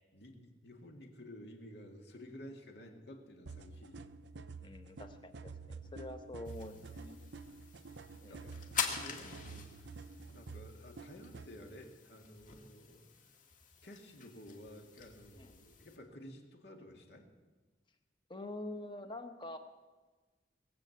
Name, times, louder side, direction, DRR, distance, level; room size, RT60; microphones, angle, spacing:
voice 1, 0.1-4.0 8.3-9.9 10.2-13.1 13.8-17.3, equal, 65° left, 3 dB, 2.2 m, -53 dB
sound 1, 3.5-11.5, right 4 dB, 75° right, 0.7 m, -49 dB
voice 2, 4.6-7.2 8.1-8.4 15.4-15.5 18.3-19.6, left 1 dB, 25° left, 7 dB, 1.2 m, -46 dB
sound 2, 6.5-16.0, left 6 dB, 45° left, 2.0 m, -45 dB
20.0 x 7.7 x 8.0 m, 1.3 s
head